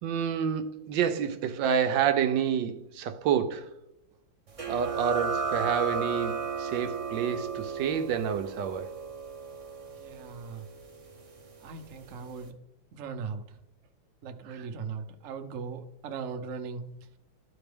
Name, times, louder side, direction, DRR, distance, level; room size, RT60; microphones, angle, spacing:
voice 1, 0.0-3.7 4.7-8.9 14.5-14.7, right 8 dB, 75° right, 1.2 m, -28 dB
sound 1, 4.6-11.8, right 5 dB, 35° right, 0.6 m, -35 dB
voice 2, 10.0-10.6 11.6-12.5 12.9-13.4 14.2-16.8, right 5 dB, 60° right, 0.9 m, -38 dB
12.0 x 4.3 x 3.4 m
omnidirectional pair, 2.1 m